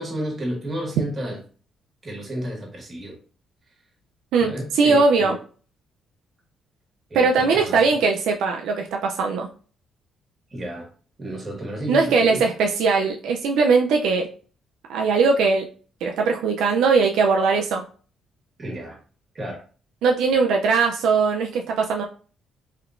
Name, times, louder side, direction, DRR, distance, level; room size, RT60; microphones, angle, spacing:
voice 1, 0.0-1.4 2.0-3.2 4.4-5.3 7.1-7.8 10.5-10.9 11.2-12.4 18.6-19.0 19.3-19.6, right 1 dB, 35° right, 0 dB, 1.5 m, -32 dB
voice 2, 4.3-5.4 7.1-9.5 11.9-14.3 14.9-15.7 16.0-17.8 20.0-22.0, right 4 dB, 85° right, 1 dB, 0.4 m, -20 dB
3.2 x 2.8 x 2.4 m, 0.39 s
cardioid pair, 90°, 0 cm